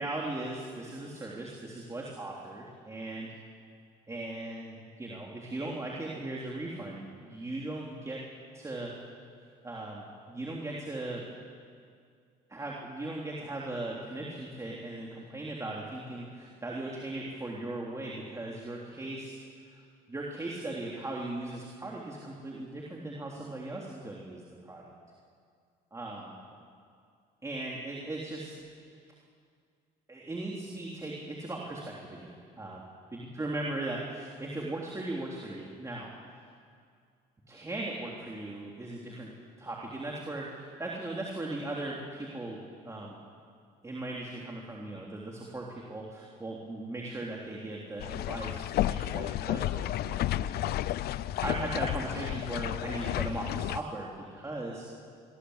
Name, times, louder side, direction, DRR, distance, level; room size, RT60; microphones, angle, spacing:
voice 1, 0.0-3.3 4.1-8.2 8.5-8.9 9.6-11.2 12.5-19.4 19.7-19.8 20.1-24.9 25.9-26.3 27.4-28.5 30.1-32.8 33.1-36.1 37.5-39.3 39.6-42.6 42.8-43.1 43.8-54.9, right 2 dB, 20° right, -3 dB, 3.4 m, -38 dB
sound 1, 48.0-53.8, left 13 dB, 70° left, 0.6 m, -32 dB
24.5 x 21.0 x 8.3 m, 2.2 s
cardioid pair, 110°, 17 cm